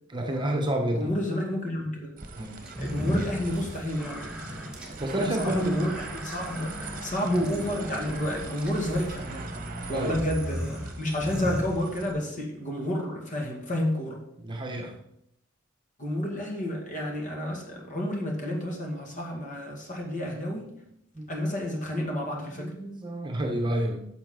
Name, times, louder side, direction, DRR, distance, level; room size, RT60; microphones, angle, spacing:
voice 1, 0.1-1.1 2.3-2.6 5.0-5.7 9.9-10.2 14.4-14.9 21.2-21.3 22.5-24.1, right 1 dB, 25° right, 2 dB, 1.1 m, -29 dB
voice 2, 0.9-2.1 2.8-4.3 5.2-9.5 9.9-14.2 16.0-20.8 21.3-22.7, left 1 dB, 40° left, 0 dB, 2.1 m, -30 dB
sound 1, 2.2-12.1, right 3 dB, 45° right, 1.1 m, -41 dB
sound 2, 2.6-12.3, equal, 5° right, 1.6 m, -37 dB
10.5 x 6.4 x 3.8 m, 0.75 s
head